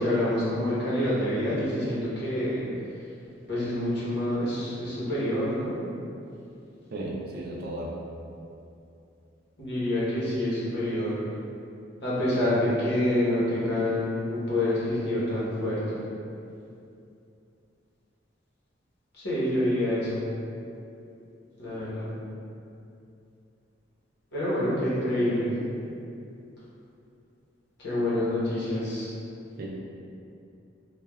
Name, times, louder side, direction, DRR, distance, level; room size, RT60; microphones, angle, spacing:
voice 1, 0.0-2.6 3.5-5.7 9.6-11.1 12.0-16.0 19.2-20.2 21.6-22.1 24.3-25.5 27.8-29.1, left 1 dB, 65° left, -10 dB, 0.9 m, -27 dB
voice 2, 6.9-8.0 29.6-29.7, right 1 dB, 55° right, -3 dB, 0.4 m, -34 dB
3.3 x 2.2 x 2.2 m, 2.6 s
head